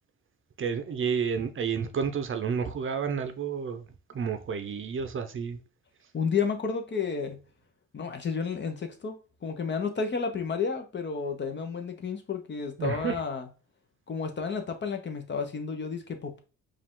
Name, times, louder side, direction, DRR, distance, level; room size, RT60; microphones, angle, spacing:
voice 1, 0.6-3.8 4.1-5.6 12.8-13.2, right 6 dB, 40° right, 0.7 m, -30 dB
voice 2, 6.1-7.4 7.9-9.2 9.4-13.5 14.1-16.4, left 5 dB, 35° left, 0.9 m, -31 dB
4.7 x 2.5 x 3.7 m
cardioid pair, 90°, 30 cm